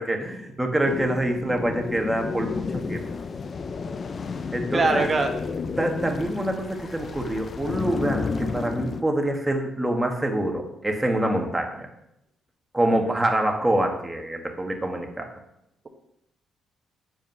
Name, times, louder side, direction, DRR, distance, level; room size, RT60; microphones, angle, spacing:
voice 1, 0.0-3.0 4.5-5.1 5.8-11.9 12.7-15.3, right 1 dB, 10° right, 3 dB, 1.5 m, -26 dB
Witch forest Atmo, 0.8-9.0, left 5 dB, 45° left, 0.5 m, -31 dB
voice 2, 4.7-5.3, right 3 dB, 35° right, 4 dB, 1.3 m, -21 dB
7.5 x 5.1 x 5.5 m, 0.81 s
cardioid pair, 90°, 0 cm